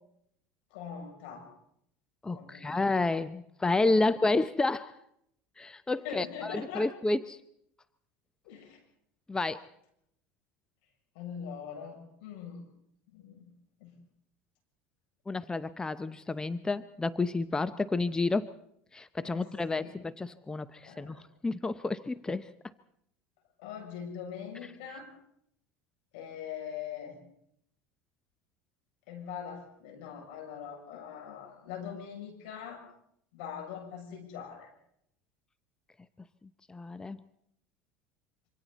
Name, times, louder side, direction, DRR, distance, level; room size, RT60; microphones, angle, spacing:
voice 1, 0.7-1.5 2.3-2.9 4.0-4.1 6.0-6.9 8.4-8.8 11.1-12.6 13.1-13.5 13.8-13.9 19.2-19.9 20.8-21.2 23.6-25.1 26.1-27.2 29.1-32.8 33.3-34.7, left 7 dB, 75° left, 3 dB, 7.2 m, -42 dB
voice 2, 2.2-5.0 5.6-7.4 9.3-9.6 15.3-18.5 18.9-22.5 36.7-37.2, left 3 dB, 10° left, 14 dB, 0.7 m, -30 dB
26.5 x 25.0 x 4.2 m, 0.71 s
supercardioid pair, 95°, 6 cm